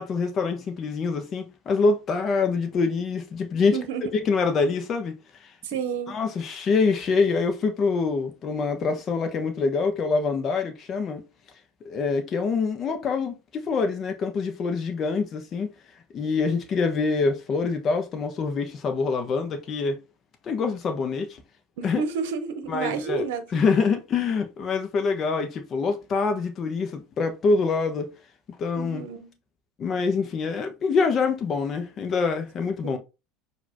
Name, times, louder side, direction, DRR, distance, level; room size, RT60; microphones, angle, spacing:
voice 1, 0.0-3.8 4.2-5.5 6.1-11.2 11.8-15.7 16.1-20.0 20.4-21.3 21.8-22.0 22.7-23.2 23.5-28.1 28.6-29.0 29.8-33.0, left 4 dB, 40° left, 1.2 m, -25 dB
voice 2, 3.7-4.1 5.6-6.1 21.8-23.6 28.7-29.3 32.8-33.0, right 6 dB, 70° right, 0.8 m, -30 dB
4.9 x 2.9 x 3.6 m
hypercardioid pair, 75°, 0 cm